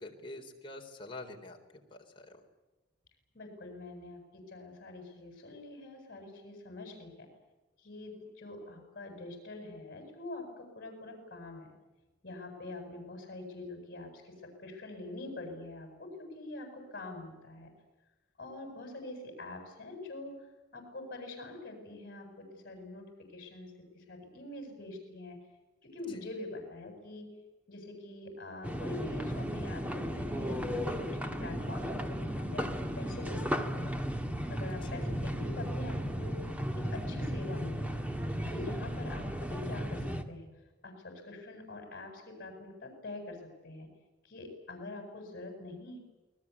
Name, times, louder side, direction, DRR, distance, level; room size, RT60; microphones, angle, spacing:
voice 1, 0.0-1.6 1.9-2.4 26.1-26.2 34.7-35.1, left 2 dB, 30° left, 1 dB, 3.8 m, -46 dB
voice 2, 3.3-7.3 7.8-11.7 12.2-17.7 18.4-20.4 20.7-23.0 23.3-25.4 25.8-27.3 27.7-32.7 33.0-33.9 34.5-36.4 36.8-38.0 38.5-40.5 40.8-43.4 43.6-43.9 44.2-46.0, left 2 dB, 50° left, 3 dB, 7.9 m, -44 dB
sound 1, 28.6-40.2, equal, 10° right, 1.8 m, -35 dB
28.5 x 20.5 x 8.5 m, 1.1 s
head